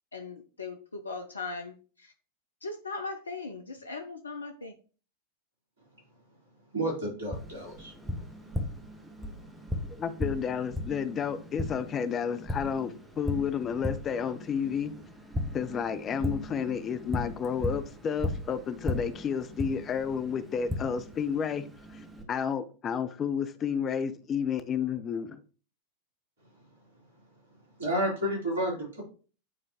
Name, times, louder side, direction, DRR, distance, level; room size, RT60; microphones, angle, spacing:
voice 1, 0.1-2.1 2.6-4.7, left 3 dB, 75° left, 0.6 m, -39 dB
voice 2, 6.7-7.9 27.8-29.0, right 1 dB, 65° right, 3.5 m, -30 dB
Tap, 7.3-22.2, left 1 dB, 5° right, 1.1 m, -37 dB
voice 3, 10.0-15.0 15.5-25.4, left 7 dB, 25° left, 0.6 m, -31 dB
9.4 x 3.7 x 3.0 m
figure-of-eight pair, 90°, 0 cm